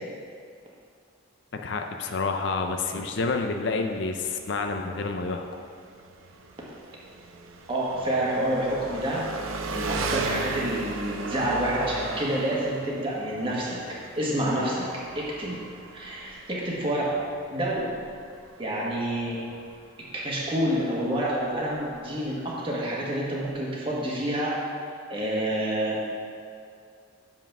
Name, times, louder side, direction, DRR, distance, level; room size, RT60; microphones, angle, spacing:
voice 1, 1.6-5.4, left 3 dB, 60° left, 4 dB, 0.5 m, -28 dB
Engine, 3.1-22.5, right 3 dB, 80° right, 0.7 m, -37 dB
voice 2, 7.7-9.2 9.7-13.8 14.2-14.9 15.1-15.6 15.9-17.2 17.5-18.0 18.6-19.4 20.1-24.6 25.1-26.0, right 1 dB, 25° right, -5 dB, 1.5 m, -28 dB
7.1 x 5.7 x 5.9 m, 2.3 s
head